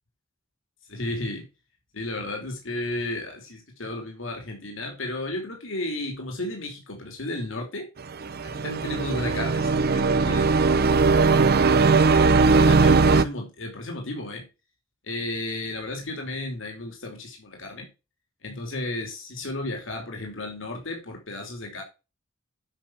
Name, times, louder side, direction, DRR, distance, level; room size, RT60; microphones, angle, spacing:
voice 1, 0.9-1.5 1.9-7.9 8.5-10.8 12.1-14.4 15.0-17.9 18.4-21.8, left 2 dB, 65° left, 2 dB, 3.0 m, -33 dB
sound 1, 8.2-13.2, right 4 dB, 50° right, 0.7 m, -19 dB
9.0 x 6.0 x 5.9 m, 0.29 s
head